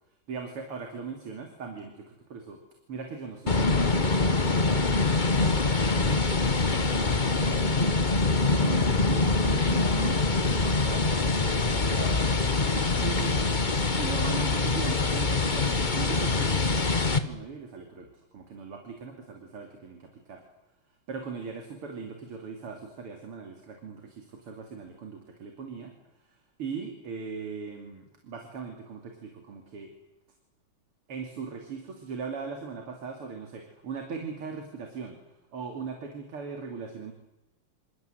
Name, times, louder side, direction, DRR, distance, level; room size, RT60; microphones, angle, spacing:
voice 1, 0.3-2.6 2.9-20.4 21.1-29.9 31.1-35.2 35.5-37.1, right 5 dB, 80° right, 3 dB, 3.8 m, -40 dB
sound 1, 3.5-17.2, left 3 dB, 25° left, 1.4 m, -24 dB
28.0 x 27.0 x 7.9 m, 0.98 s
omnidirectional pair, 2.4 m